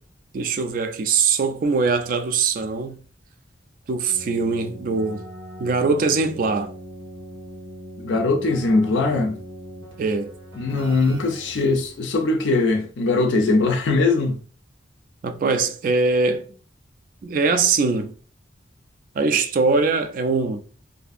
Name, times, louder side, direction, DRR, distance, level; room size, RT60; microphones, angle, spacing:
voice 1, 0.3-3.0 3.9-5.2 5.6-6.7 10.0-10.3 15.2-16.5 17.2-18.1 19.2-20.6, right 4 dB, 45° right, 0.3 m, -22 dB
Keyboard (musical), 4.1-12.2, equal, 85° right, 0.8 m, -41 dB
voice 2, 8.0-9.4 10.5-14.4, left 3 dB, 65° left, 0.5 m, -21 dB
2.6 x 2.6 x 2.4 m
head